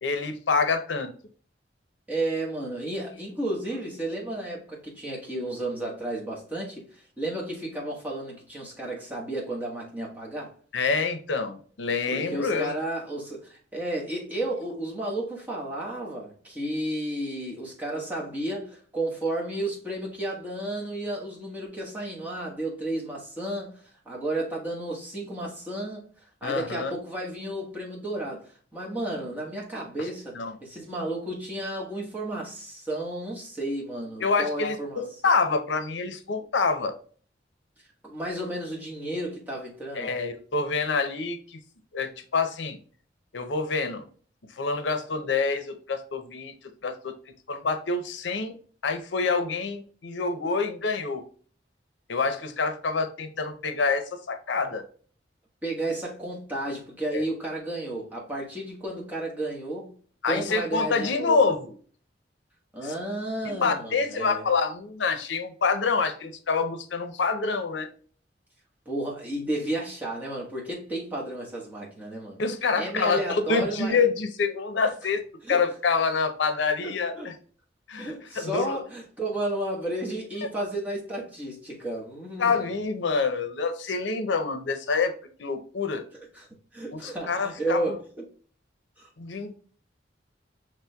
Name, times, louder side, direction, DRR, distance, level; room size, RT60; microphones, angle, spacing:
voice 1, 0.0-1.1 10.7-12.7 26.4-26.9 30.0-30.1 30.3-30.5 34.2-36.9 39.9-41.6 41.9-42.8 43.3-44.1 44.6-46.5 46.8-47.1 47.5-48.5 48.8-51.2 52.1-54.8 57.1-57.2 60.2-61.7 62.8-62.9 63.4-67.9 72.4-75.2 75.5-77.3 77.9-78.8 82.4-85.1 85.4-86.0 86.9-88.0 89.2-89.5, left 4 dB, 80° left, 0.6 m, -27 dB
voice 2, 2.1-10.5 12.1-26.0 26.4-35.0 38.0-40.1 55.6-59.9 60.2-61.5 62.7-64.4 68.8-72.4 72.8-74.0 75.4-75.6 76.8-77.3 78.0-82.7 86.3-86.5 86.7-88.2 89.0-89.1, right 1 dB, 10° right, 1.1 m, -32 dB
5.9 x 3.1 x 2.2 m
head